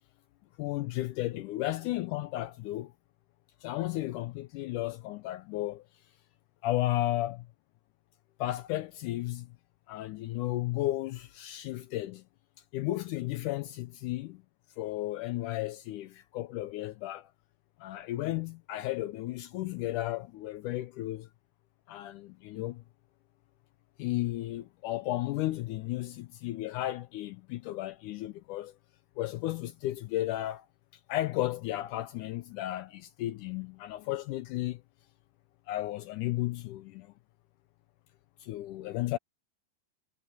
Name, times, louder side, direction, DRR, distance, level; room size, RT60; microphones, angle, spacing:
voice 1, 0.6-2.9 3.6-5.9 6.6-7.5 8.4-9.6 9.9-12.2 12.7-14.4 14.8-17.3 17.8-21.3 21.9-22.8 24.0-28.8 29.2-30.7 31.1-34.8 35.7-37.1 38.4-39.2, left 16 dB, 90° left, 1.8 m, -34 dB
omnidirectional pair, 4.3 m